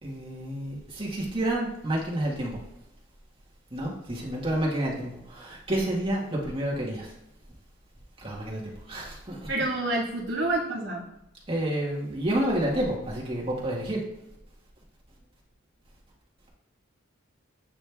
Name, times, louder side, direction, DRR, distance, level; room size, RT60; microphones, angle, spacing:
voice 1, 0.0-2.6 3.7-7.1 8.2-9.5 11.5-14.0, right 1 dB, 30° right, -4 dB, 1.7 m, -29 dB
voice 2, 9.5-11.0, right 2 dB, 90° right, -6 dB, 1.5 m, -28 dB
8.8 x 3.1 x 3.4 m, 0.82 s
head